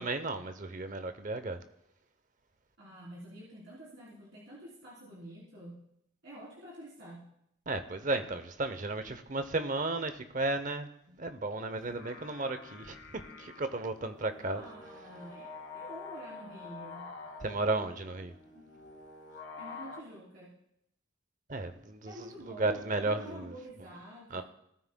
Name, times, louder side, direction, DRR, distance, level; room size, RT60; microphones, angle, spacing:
voice 1, 0.0-1.6 7.7-14.6 17.4-18.3 21.5-23.5 24.3-24.4, right 2 dB, 40° right, 9 dB, 0.7 m, -34 dB
voice 2, 2.8-5.8 6.2-7.2 14.4-17.1 18.5-18.7 19.6-20.5 22.0-24.4, right 1 dB, 55° right, -7 dB, 3.4 m, -48 dB
sound 1, 11.7-20.0, left 3 dB, 60° left, 1.7 m, -48 dB
18.0 x 9.5 x 2.2 m, 0.76 s
head